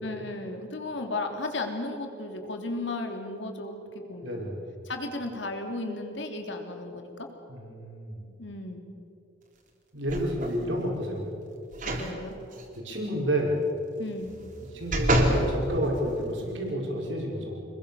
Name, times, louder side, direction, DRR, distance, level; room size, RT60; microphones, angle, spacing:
voice 1, 0.0-4.4 4.8-7.3 8.4-8.9 11.8-12.4 14.0-14.3, left 2 dB, 70° left, 4 dB, 3.2 m, -35 dB
voice 2, 4.2-4.7 7.5-8.3 9.9-11.3 12.8-13.6 14.7-17.7, equal, 80° right, -1 dB, 5.3 m, -30 dB
sound 1, 10.1-10.6 11.7-12.1 12.5-12.6 14.2-15.5 16.1-16.2, right 1 dB, 45° right, 3.7 m, -27 dB
27.0 x 21.5 x 7.0 m, 2.9 s
head